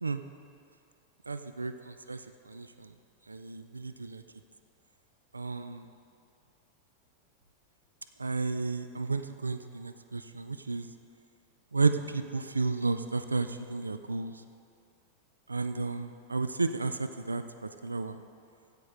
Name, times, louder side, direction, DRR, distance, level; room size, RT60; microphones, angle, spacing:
voice 1, 1.3-2.9 3.3-4.2 5.3-5.9 8.2-10.9 11.7-14.3 15.5-18.2, right 3 dB, 80° right, 10 dB, 0.3 m, -32 dB
15.5 x 5.2 x 5.1 m, 2.4 s
figure-of-eight pair, 90°, 0 cm